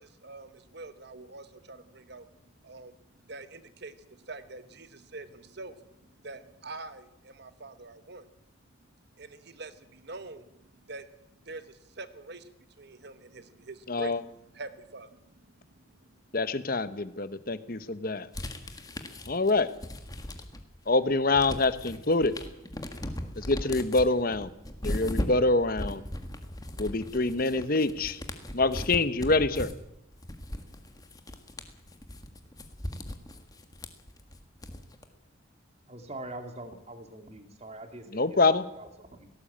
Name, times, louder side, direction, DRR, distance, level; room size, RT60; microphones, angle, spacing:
voice 1, 0.0-3.0 3.2-8.3 9.2-11.1 11.4-14.3 14.5-16.1, right 3 dB, 55° right, 11 dB, 1.1 m, -45 dB
voice 2, 13.9-14.2 16.3-18.3 19.3-19.7 20.9-22.4 23.4-24.5 24.8-26.0 26.8-28.2 28.5-29.7 38.1-38.6, left 3 dB, 45° left, 14 dB, 1.0 m, -26 dB
sound 1, 18.3-20.8 21.1-35.0, left 1 dB, 20° left, 1.8 m, -38 dB
voice 3, 35.9-39.3, right 2 dB, 30° right, 7 dB, 2.5 m, -44 dB
18.5 x 17.0 x 8.8 m, 0.82 s
head